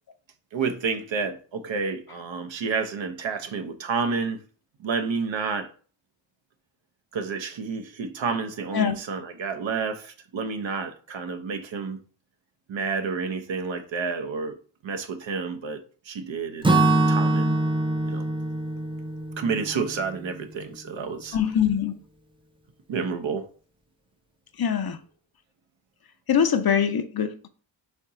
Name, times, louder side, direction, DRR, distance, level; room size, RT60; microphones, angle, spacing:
voice 1, 0.5-4.4 4.8-5.7 7.1-12.0 12.7-14.6 14.8-15.8 16.1-17.6 18.1-18.3 19.4-21.4 22.9-23.5, right 5 dB, 65° right, 0.7 m, -30 dB
Acoustic guitar / Strum, 16.6-20.6, right 2 dB, 10° right, 0.5 m, -24 dB
voice 2, 21.3-22.0 24.6-25.0 26.3-27.5, left 8 dB, 50° left, 0.6 m, -23 dB
4.5 x 2.8 x 3.6 m
cardioid pair, 50°, 48 cm